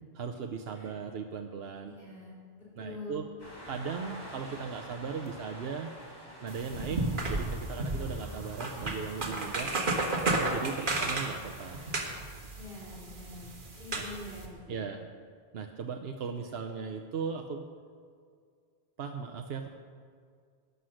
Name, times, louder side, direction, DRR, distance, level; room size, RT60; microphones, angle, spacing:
voice 1, 0.1-1.9 2.8-3.3 3.7-5.9 6.4-9.8 10.4-11.8 13.9-14.0 14.7-15.1 15.5-17.6 19.0-19.7, right 5 dB, 75° right, 4 dB, 1.0 m, -38 dB
voice 2, 1.8-3.2 8.2-8.3 10.7-11.0 12.5-13.5 13.8-14.9, left 2 dB, 60° left, -7 dB, 3.6 m, -45 dB
sound 1, 3.4-12.1, equal, 20° left, 2.6 m, -49 dB
sound 2, 6.5-14.5, right 2 dB, 55° right, 1.7 m, -33 dB
12.0 x 9.6 x 6.4 m, 2.1 s
omnidirectional pair, 1.1 m